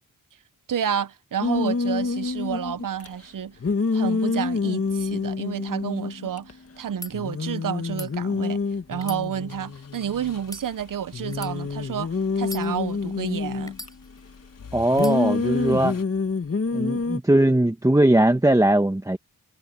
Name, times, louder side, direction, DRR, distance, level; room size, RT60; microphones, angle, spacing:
voice 1, 0.7-3.6 3.9-8.6 8.9-13.8, right 8 dB, 75° right, 0.9 m, -30 dB
sound 1, 1.4-3.1 3.6-6.5 6.8-6.9 7.1-10.6 11.1-13.9 14.9-17.2, left 4 dB, 45° left, 1.9 m, -27 dB
sound 2, 7.0-7.1 7.8-8.1 8.9-9.9 10.4-10.7 11.3-11.6 12.4-13.1 13.7-14.4 14.9-15.2, left 1 dB, 10° left, 4.1 m, -40 dB
sound 3, 9.5-16.0, left 6 dB, 85° left, 4.0 m, -48 dB
voice 2, 14.7-16.0 16.7-19.2, right 1 dB, 10° right, 1.3 m, -20 dB
wide cardioid pair, 80°, 32 cm